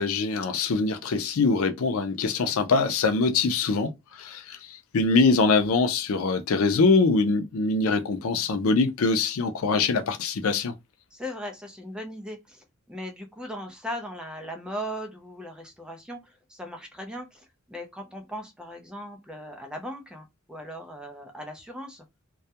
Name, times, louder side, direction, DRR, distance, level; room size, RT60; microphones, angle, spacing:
voice 1, 0.0-3.9 4.2-10.7, left 4 dB, 80° left, 0.5 m, -23 dB
voice 2, 11.1-22.1, equal, 5° right, 0.5 m, -38 dB
2.2 x 2.1 x 2.8 m
head